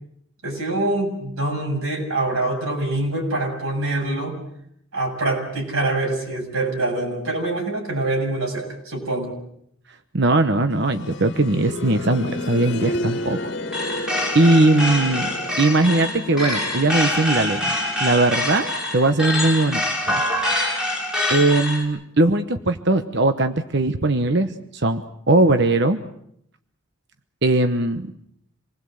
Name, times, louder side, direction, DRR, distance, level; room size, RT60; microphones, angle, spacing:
voice 1, 0.4-4.4 4.9-9.3, right 2 dB, 85° right, 1 dB, 7.3 m, -25 dB
voice 2, 10.1-13.4 14.3-15.3 15.6-20.2 21.3-26.0 27.4-28.1, right 2 dB, 55° right, 8 dB, 1.1 m, -20 dB
sound 1, 10.7-21.5 21.8-21.9 22.8-22.9, left 2 dB, 55° left, 1.9 m, -33 dB
sound 2, 13.7-21.8, left 1 dB, 5° right, 5.3 m, -25 dB
27.0 x 20.0 x 7.8 m, 0.71 s
head